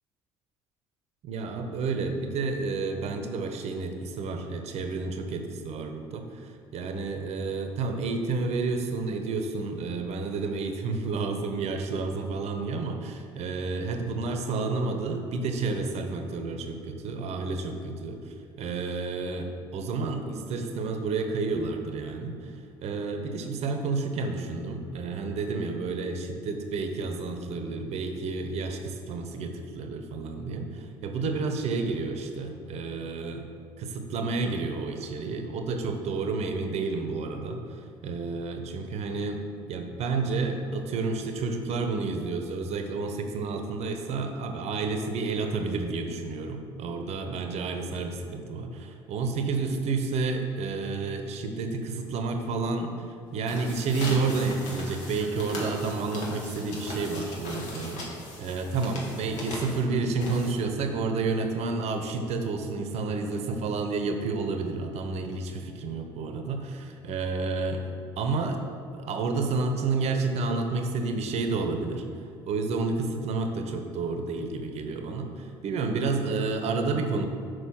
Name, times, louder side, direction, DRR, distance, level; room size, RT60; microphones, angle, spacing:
voice 1, 1.2-33.5 33.8-39.4 39.7-67.8 68.2-68.6 68.9-72.1 72.4-77.3, right 3 dB, 60° right, 5 dB, 0.9 m, -30 dB
sound 1, 53.3-60.8, left 1 dB, 65° left, 1.9 m, -39 dB
6.5 x 4.7 x 6.0 m, 2.3 s
hypercardioid pair, 65°, 13 cm